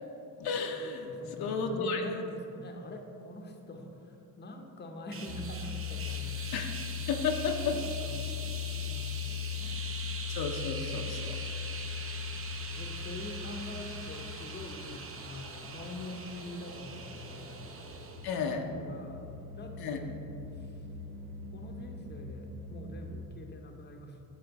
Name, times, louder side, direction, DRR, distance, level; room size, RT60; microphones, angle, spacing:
voice 1, 0.4-1.1 1.4-2.0 6.5-6.7 7.1-7.8 10.3-11.4 18.2-18.7 19.8-20.0, left 5 dB, 70° left, 3 dB, 0.8 m, -32 dB
voice 2, 1.0-6.4 7.7-9.8 12.6-17.7 18.3-20.2 20.5-20.8 21.5-24.3, left 2 dB, 25° left, 3 dB, 0.8 m, -44 dB
sound 1, 5.1-18.5, right 4 dB, 35° right, 0.7 m, -43 dB
sound 2, 5.3-23.3, left 8 dB, 75° right, 1.1 m, -40 dB
9.2 x 3.2 x 5.8 m, 2.8 s
cardioid pair, 105°, 38 cm